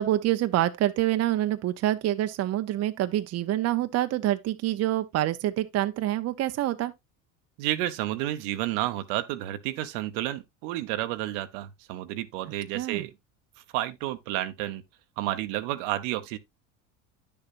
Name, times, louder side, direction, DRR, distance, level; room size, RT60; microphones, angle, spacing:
voice 1, 0.0-6.9 12.7-13.0, right 13 dB, 40° right, 0.7 m, -26 dB
voice 2, 7.6-13.1 13.7-14.8 15.2-16.4, right 14 dB, 75° right, 1.0 m, -31 dB
9.8 x 6.9 x 2.5 m
supercardioid pair, 95°, 37 cm